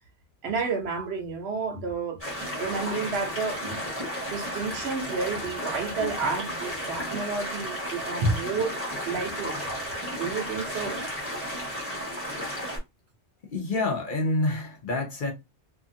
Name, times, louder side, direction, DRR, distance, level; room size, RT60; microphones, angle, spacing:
voice 1, 0.4-3.8 4.3-9.6 10.2-11.0, right 4 dB, 70° right, 1.0 m, -31 dB
sound 1, 2.2-12.8, equal, 10° left, 1.1 m, -33 dB
voice 2, 13.5-15.3, left 2 dB, 55° left, 0.8 m, -27 dB
2.7 x 2.4 x 2.6 m
omnidirectional pair, 1.1 m